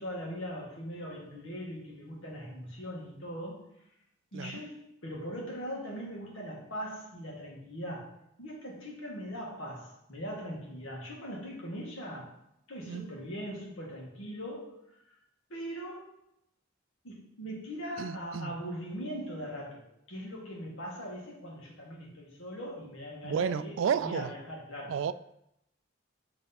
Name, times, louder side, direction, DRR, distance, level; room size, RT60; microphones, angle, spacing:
voice 1, 0.0-3.7 4.3-12.3 12.7-15.0 15.5-16.1 17.0-24.9, equal, 80° left, -2 dB, 1.7 m, -40 dB
voice 2, 18.0-18.6 23.2-24.3 24.9-25.1, right 7 dB, 75° right, 14 dB, 0.3 m, -32 dB
7.9 x 3.5 x 4.1 m, 0.80 s
head